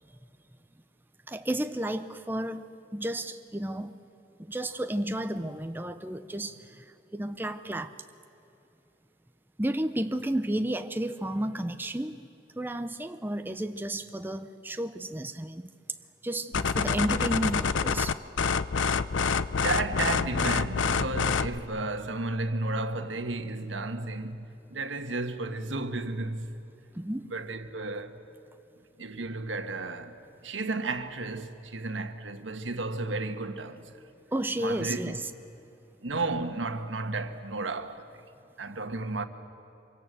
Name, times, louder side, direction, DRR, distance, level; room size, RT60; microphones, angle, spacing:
voice 1, 1.3-4.0 4.4-6.8 7.1-7.9 9.6-12.2 12.6-15.7 16.2-18.2 26.9-27.3 34.3-35.3, right 1 dB, 10° right, 0.6 m, -32 dB
sound 1, 16.5-21.6, left 5 dB, 85° left, 0.6 m, -27 dB
voice 2, 19.6-26.6 27.3-28.2 29.0-34.1 34.6-35.2 36.0-38.1 38.6-39.3, right 2 dB, 90° right, 1.5 m, -33 dB
25.5 x 24.5 x 7.7 m
head